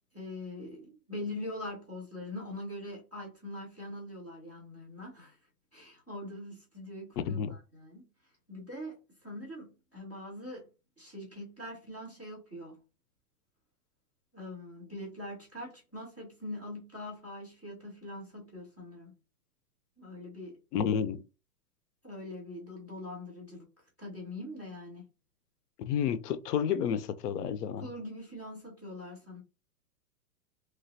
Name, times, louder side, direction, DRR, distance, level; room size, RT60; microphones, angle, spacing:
voice 1, 0.1-5.4 5.7-8.1 8.5-10.7 11.0-12.7 14.3-19.1 20.0-20.6 22.0-23.7 24.0-25.0 27.8-29.4, left 1 dB, 5° left, 0.5 m, -43 dB
voice 2, 7.2-7.6 20.7-21.2 25.9-27.9, left 8 dB, 85° left, 0.6 m, -30 dB
3.1 x 2.3 x 2.7 m
supercardioid pair, 175°, 45 cm